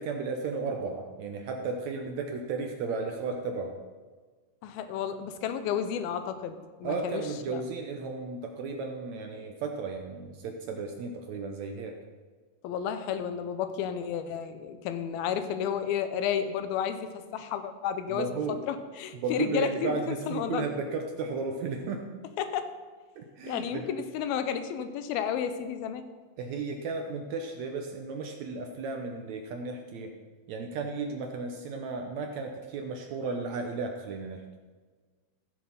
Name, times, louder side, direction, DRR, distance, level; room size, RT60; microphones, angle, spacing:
voice 1, 0.0-3.8 6.8-12.0 18.1-18.6 19.1-22.0 23.2-23.9 26.4-30.1 30.5-34.4, right 4 dB, 75° right, 3 dB, 1.7 m, -34 dB
voice 2, 4.6-7.2 7.5-7.6 12.6-18.4 18.7-20.7 22.4-22.7 23.5-26.1, left 8 dB, 80° left, 10 dB, 2.7 m, -32 dB
15.0 x 7.4 x 5.8 m, 1.4 s
omnidirectional pair, 4.3 m